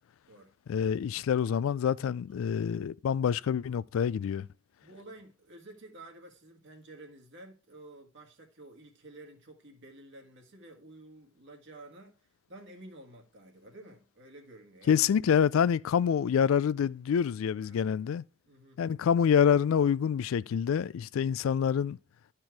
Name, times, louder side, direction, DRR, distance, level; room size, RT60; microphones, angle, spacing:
voice 1, 0.7-4.5 14.9-18.2 18.8-22.0, left 7 dB, 70° left, 0.3 m, -26 dB
voice 2, 4.8-15.0 17.5-17.8 18.4-18.8, right 2 dB, 60° right, 1.7 m, -51 dB
12.0 x 4.5 x 4.6 m
head